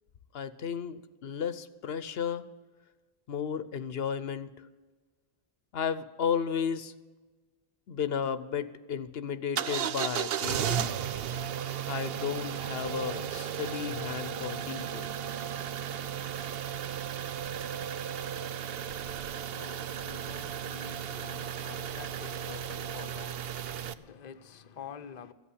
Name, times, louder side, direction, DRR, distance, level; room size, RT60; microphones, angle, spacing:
voice 1, 0.3-2.4 3.3-4.5 5.7-6.9 7.9-11.0 11.9-15.1, left 7 dB, 75° left, 0.9 m, -33 dB
sound 1, 9.6-23.9, right 9 dB, 70° right, 0.8 m, -35 dB
voice 2, 17.7-25.3, left 7 dB, 45° left, 0.8 m, -49 dB
14.5 x 8.3 x 10.0 m
omnidirectional pair, 1.0 m